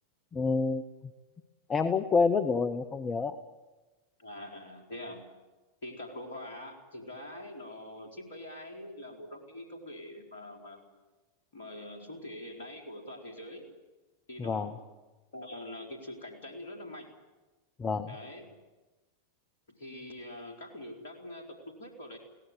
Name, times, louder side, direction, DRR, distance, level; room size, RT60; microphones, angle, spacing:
voice 1, 0.3-0.8 1.7-3.4 14.4-14.7 17.8-18.1, left 4 dB, 20° left, 12 dB, 1.0 m, -28 dB
voice 2, 4.2-5.3 5.8-10.9 11.5-13.7 14.3-14.9 15.3-17.1 18.1-18.5 19.8-22.2, left 1 dB, 60° left, 2 dB, 4.5 m, -44 dB
22.5 x 17.5 x 9.2 m, 1.2 s
figure-of-eight pair, 90°, 0 cm